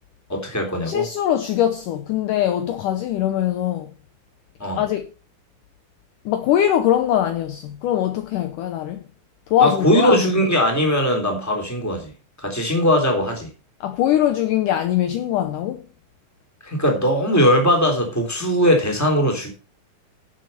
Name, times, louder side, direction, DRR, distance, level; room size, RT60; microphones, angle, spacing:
voice 1, 0.3-1.0 4.6-4.8 9.6-12.1 12.4-13.5 16.6-19.5, equal, 5° left, 2.9 m, -20 dB
voice 2, 0.9-3.9 4.7-5.1 6.3-9.0 9.5-10.4 13.8-15.9, left 11 dB, 75° left, 2.1 m, -22 dB
12.0 x 7.3 x 5.5 m
omnidirectional pair, 4.4 m